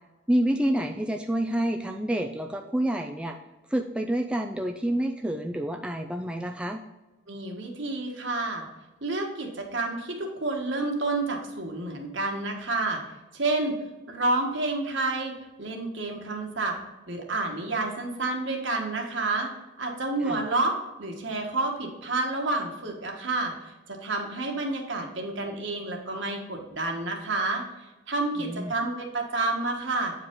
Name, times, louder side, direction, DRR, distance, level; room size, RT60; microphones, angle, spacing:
voice 1, 0.3-3.4 3.7-6.8 20.2-20.5 28.4-28.7, right 1 dB, 5° right, 3 dB, 0.3 m, -28 dB
voice 2, 7.3-8.6 9.0-13.0 13.3-13.7 14.1-16.8 17.1-19.5 19.8-27.6 28.1-30.1, right 2 dB, 65° right, 1 dB, 1.5 m, -29 dB
8.9 x 4.8 x 3.8 m, 1.1 s
head